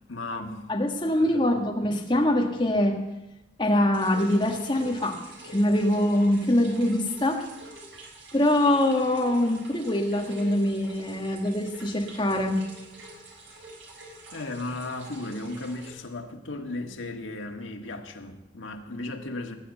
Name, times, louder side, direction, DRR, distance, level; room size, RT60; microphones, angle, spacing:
voice 1, 0.1-0.6 1.2-1.6 13.5-13.6 14.3-19.6, left 2 dB, 85° left, 1.6 m, -36 dB
voice 2, 0.7-3.0 3.6-5.2 5.4-7.4 8.3-12.6, left 1 dB, 25° left, 1.6 m, -24 dB
sound 1, 3.9-15.9, right 2 dB, 90° right, 3.8 m, -46 dB
18.5 x 7.8 x 8.2 m
head